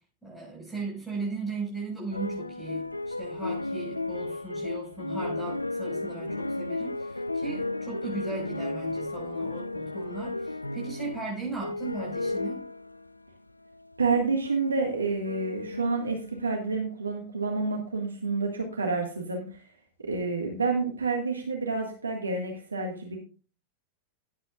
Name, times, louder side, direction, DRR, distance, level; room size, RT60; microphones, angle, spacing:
voice 1, 0.2-12.6, right 4 dB, ahead, -3 dB, 5.5 m, -37 dB
sound 1, 2.1-13.2 13.7-16.5, left 2 dB, 85° left, 0.4 m, -34 dB
voice 2, 14.0-19.6 20.0-23.2, right 4 dB, 75° right, 1 dB, 1.9 m, -29 dB
18.0 x 8.2 x 2.5 m, 0.37 s
figure-of-eight pair, 90°, 0 cm